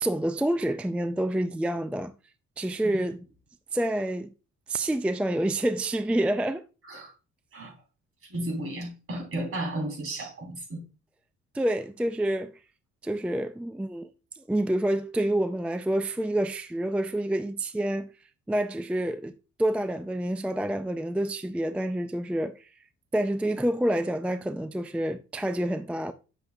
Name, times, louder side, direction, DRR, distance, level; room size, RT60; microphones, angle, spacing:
voice 1, 0.0-2.1 2.6-3.3 3.7-4.3 4.7-6.6 11.5-12.6 13.0-14.1 14.3-18.1 18.5-22.7 23.1-26.1, right 1 dB, 5° right, 0.4 m, -28 dB
voice 2, 8.3-10.8, right 1 dB, 45° right, 3.5 m, -33 dB
8.1 x 6.6 x 2.3 m
cardioid pair, 90°, 30 cm